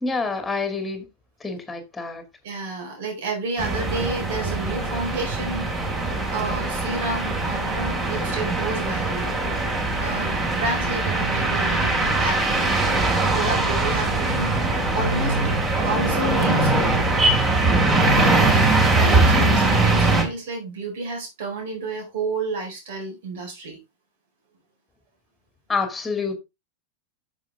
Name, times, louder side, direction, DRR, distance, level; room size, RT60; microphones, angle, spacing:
voice 1, 0.0-1.1 1.4-2.2 25.7-26.3, left 4 dB, 10° left, 2.3 m, -27 dB
voice 2, 2.4-5.9 6.3-9.3 10.0-14.7 14.9-15.3 15.7-16.9 18.2-23.8, right 2 dB, 55° right, 4.5 m, -30 dB
sound 1, 3.6-20.2, right 2 dB, 20° right, 3.1 m, -21 dB
9.1 x 6.9 x 3.5 m
figure-of-eight pair, 90°, 0 cm